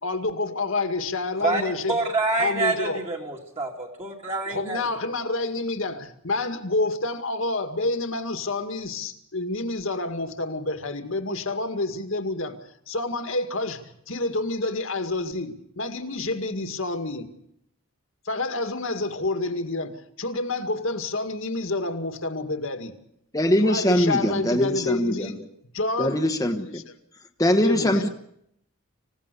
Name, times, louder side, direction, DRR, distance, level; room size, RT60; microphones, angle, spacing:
voice 1, 0.0-2.0 2.4-3.0 4.5-12.6 12.9-17.3 18.3-22.9 23.6-25.4 25.7-26.2 26.7-26.8 27.6-28.0, left 2 dB, 60° left, 2.1 m, -28 dB
voice 2, 1.4-4.8, right 3 dB, 30° right, 2.5 m, -27 dB
voice 3, 23.3-25.4 26.0-26.8 27.4-28.1, left 1 dB, 15° left, 1.3 m, -22 dB
26.5 x 17.0 x 6.9 m
head